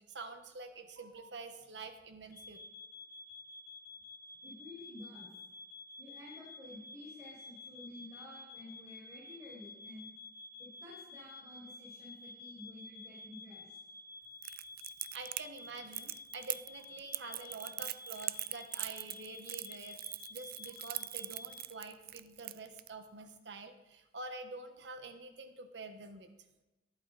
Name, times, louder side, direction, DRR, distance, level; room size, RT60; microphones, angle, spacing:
voice 1, 0.1-2.6 15.1-20.0 20.3-26.3, right 3 dB, 75° right, 7 dB, 1.3 m, -47 dB
sound 1, 2.3-21.6, left 3 dB, 15° left, 2.5 m, -51 dB
voice 2, 4.4-5.3 6.0-10.1 10.6-13.8 17.3-17.4, left 1 dB, 20° right, -6 dB, 5.2 m, -51 dB
Crackle, 14.4-22.9, right 17 dB, 55° right, 0.4 m, -41 dB
19.0 x 12.0 x 4.2 m, 1.0 s
head